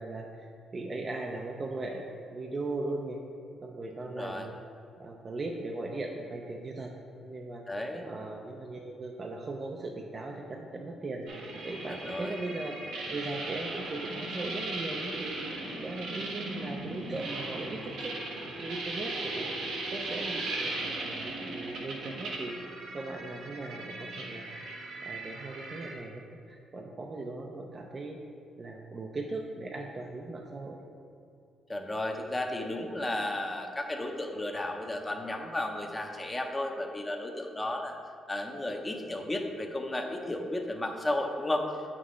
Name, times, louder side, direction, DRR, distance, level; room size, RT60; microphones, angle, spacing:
voice 1, 0.0-2.1 2.3-3.2 3.6-4.5 5.0-6.9 7.2-7.6 8.0-11.3 11.6-12.7 13.1-15.3 15.7-18.1 18.6-19.5 19.9-22.6 22.9-24.5 25.0-26.2 26.5-28.2 28.6-30.8, right 2 dB, 35° right, 1 dB, 0.6 m, -38 dB
voice 2, 4.0-4.5 7.7-8.1 12.1-12.3 16.2-16.3 31.7-37.9 38.3-41.7, left 1 dB, 15° left, 3 dB, 0.8 m, -33 dB
sound 1, 11.3-25.9, right 2 dB, 80° right, 1.2 m, -38 dB
8.1 x 6.0 x 3.2 m, 2.5 s
cardioid pair, 90°, 0 cm